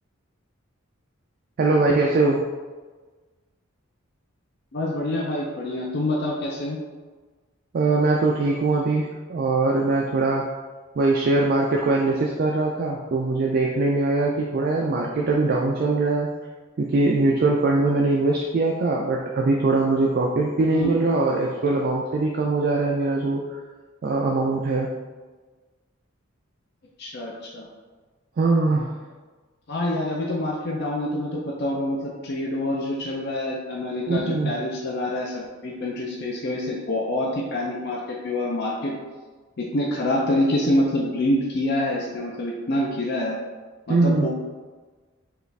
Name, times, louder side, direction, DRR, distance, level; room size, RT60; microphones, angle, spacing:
voice 1, 1.6-2.4 7.7-10.4 11.0-16.3 16.8-23.6 24.0-24.9 28.4-28.9 34.1-34.5 43.9-44.3, right 3 dB, 45° right, -1 dB, 0.3 m, -22 dB
voice 2, 4.7-6.8 20.7-20.9 27.0-27.7 29.7-38.9 39.6-43.4 43.9-44.3, left 1 dB, 50° left, -2 dB, 0.5 m, -26 dB
4.8 x 2.4 x 3.2 m, 1.4 s
head